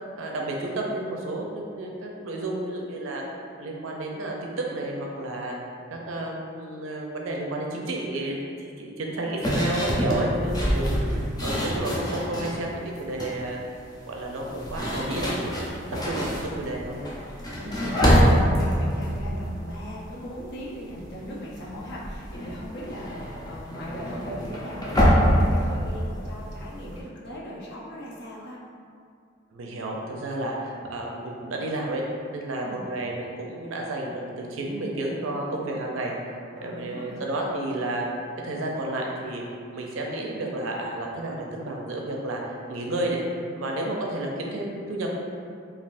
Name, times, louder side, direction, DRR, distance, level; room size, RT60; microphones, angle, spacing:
voice 1, 0.2-3.2 3.6-5.6 5.9-13.6 14.1-17.0 29.5-32.0 32.3-36.1 36.6-38.1 38.4-39.4 39.7-42.4 42.7-43.2 43.5-45.2, right 1 dB, 80° right, -1 dB, 0.5 m, -31 dB
voice 2, 9.2-9.8 17.3-28.6 32.5-32.8 36.6-37.2, equal, 60° left, -6 dB, 0.7 m, -39 dB
sound 1, 9.4-12.6 13.0-13.4 14.3-20.6 20.9-21.2 21.5-27.0, equal, 20° left, 0.5 m, -25 dB
3.3 x 2.4 x 2.5 m, 2.3 s
head